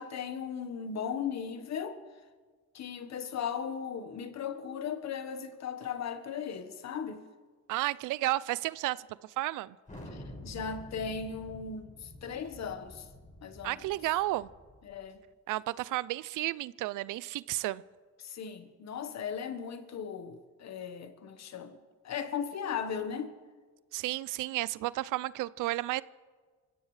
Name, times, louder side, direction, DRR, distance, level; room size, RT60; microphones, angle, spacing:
voice 1, 0.0-2.0 2.7-7.2 10.1-13.1 13.4-13.9 14.8-15.2 18.2-21.8 22.0-23.3, left 7 dB, 60° left, 1.4 m, -37 dB
voice 2, 7.7-9.0 9.4-9.8 13.6-14.5 15.5-17.8 23.9-26.0, right 17 dB, 90° right, 0.5 m, -32 dB
Thunder, 9.9-15.0, left 1 dB, 25° left, 5.9 m, -48 dB
25.0 x 16.0 x 3.3 m
cardioid pair, 90°, 30 cm